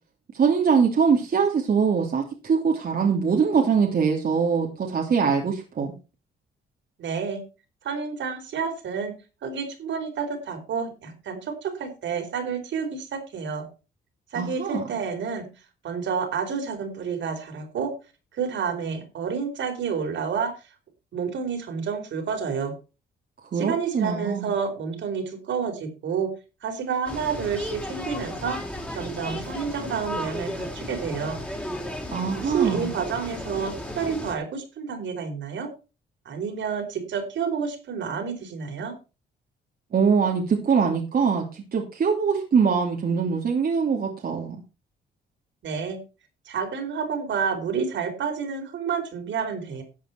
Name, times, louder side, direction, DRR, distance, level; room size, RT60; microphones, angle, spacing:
voice 1, 0.3-5.9 14.3-14.8 23.5-24.5 32.1-32.9 39.9-44.6, right 6 dB, 50° right, 1 dB, 2.8 m, -23 dB
voice 2, 7.0-7.4 7.8-9.1 9.4-13.7 14.3-15.5 15.8-17.9 18.3-20.5 21.1-22.7 23.6-26.3 26.6-28.6 28.9-31.4 32.4-35.7 36.2-39.0 45.6-46.0 46.5-49.8, right 6 dB, 70° right, 4 dB, 4.5 m, -29 dB
sound 1, 27.1-34.4, left 1 dB, 5° left, 4.0 m, -34 dB
13.0 x 8.1 x 4.5 m, 0.31 s
cardioid pair, 90°, 20 cm